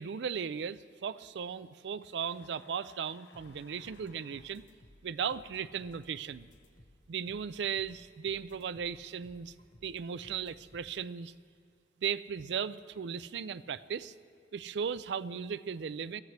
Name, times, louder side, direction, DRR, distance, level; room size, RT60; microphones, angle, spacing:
voice 1, 0.0-4.6 5.0-6.5 7.1-9.5 9.8-11.3 12.0-14.1 14.5-16.2, right 7 dB, 70° right, 16 dB, 0.4 m, -36 dB
sound 1, 2.2-4.5, left 3 dB, 70° left, 1.0 m, -61 dB
sound 2, 3.3-11.1, left 1 dB, 45° left, 1.1 m, -60 dB
22.0 x 14.5 x 3.3 m, 2.2 s
head